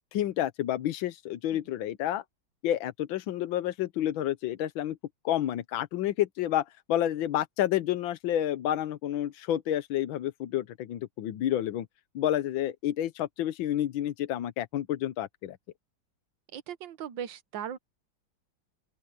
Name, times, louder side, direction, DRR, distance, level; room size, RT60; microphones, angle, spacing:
voice 1, 0.0-2.2 2.6-5.0 5.2-11.9 12.1-15.6, left 12 dB, 85° left, 1.6 m, -29 dB
voice 2, 16.5-17.8, right 9 dB, 70° right, 1.7 m, -38 dB
open air
omnidirectional pair, 2.1 m